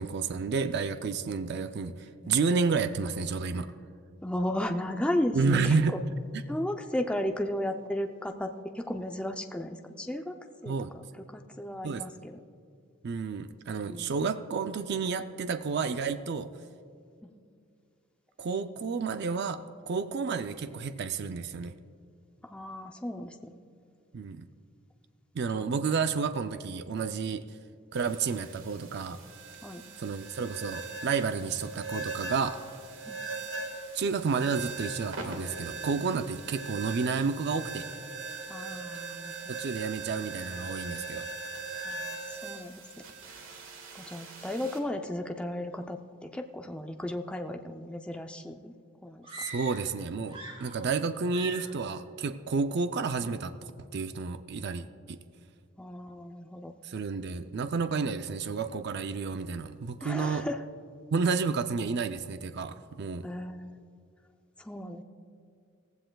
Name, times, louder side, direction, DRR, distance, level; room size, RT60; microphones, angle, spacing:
voice 1, 0.0-3.7 5.3-6.0 6.3-6.4 10.7-10.9 11.8-12.0 13.0-16.5 18.4-21.8 24.1-24.5 25.3-27.4 27.9-29.2 30.0-32.6 33.9-37.9 39.5-41.3 49.4-55.2 56.8-60.5 61.1-63.3, right 5 dB, 55° right, 9 dB, 0.4 m, -31 dB
voice 2, 4.2-5.7 6.5-10.4 10.6-11.0 11.3-12.4 13.9-14.1 17.2-17.3 22.4-23.4 25.5-25.6 29.6-29.8 33.0-33.2 38.5-39.3 41.8-42.8 43.3-43.4 43.9-48.7 49.0-49.3 55.8-56.7 60.0-60.6 63.2-63.7 64.6-65.0, left 1 dB, 5° left, 4 dB, 0.5 m, -34 dB
sound 1, 27.9-44.8, right 3 dB, 70° right, 1.6 m, -40 dB
sound 2, 49.2-50.0 50.2-51.0 51.3-51.8, right 1 dB, 25° right, 3.0 m, -43 dB
18.0 x 15.0 x 2.3 m, 2.3 s
head